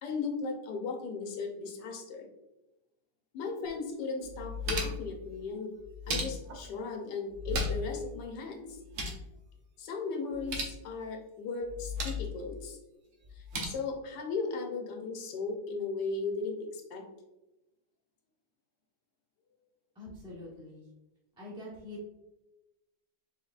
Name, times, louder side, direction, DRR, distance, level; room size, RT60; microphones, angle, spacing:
voice 1, 0.0-2.3 3.3-5.7 6.1-8.8 9.8-12.8 13.3-17.0, left 4 dB, 85° left, 2 dB, 1.4 m, -36 dB
sound 1, 3.6-3.7 4.2-5.1 5.8-6.7 7.3-8.0 8.2-8.3 8.7-9.2 10.3-10.8 11.6-12.3 13.2-13.6, left 1 dB, 55° right, 1.0 m, -35 dB
voice 2, 19.9-20.9 21.4-22.1, left 1 dB, 5° right, -6 dB, 0.8 m, -44 dB
4.7 x 3.5 x 2.4 m, 0.99 s
omnidirectional pair, 1.8 m